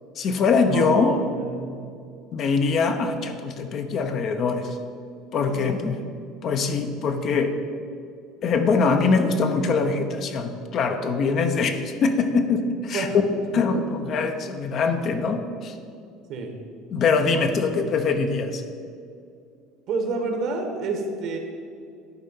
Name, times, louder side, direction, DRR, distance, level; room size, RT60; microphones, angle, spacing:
voice 1, 0.2-1.2 2.3-4.8 5.3-6.0 6.4-7.5 8.4-13.1 13.5-15.7 16.9-18.6, left 4 dB, 50° left, 6 dB, 0.8 m, -23 dB
voice 2, 0.7-1.8 5.4-5.7 12.9-13.2 13.4-13.6 16.3-16.5 19.9-21.4, right 3 dB, 60° right, 4 dB, 1.4 m, -29 dB
11.0 x 4.4 x 5.6 m, 2.3 s
supercardioid pair, 90°, 0 cm